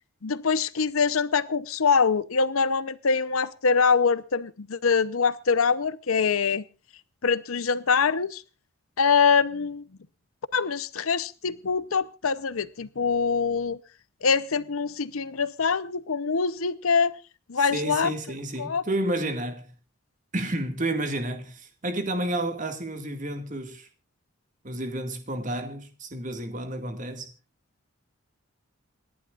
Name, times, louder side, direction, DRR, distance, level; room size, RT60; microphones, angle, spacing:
voice 1, 0.2-6.6 7.2-8.4 9.0-9.8 10.5-13.8 14.2-17.1 17.5-18.1 18.6-18.8, left 5 dB, 85° left, 0.7 m, -24 dB
voice 2, 17.6-19.7 20.3-23.9 24.6-27.3, right 1 dB, 35° right, 2.1 m, -31 dB
28.0 x 11.0 x 2.4 m
head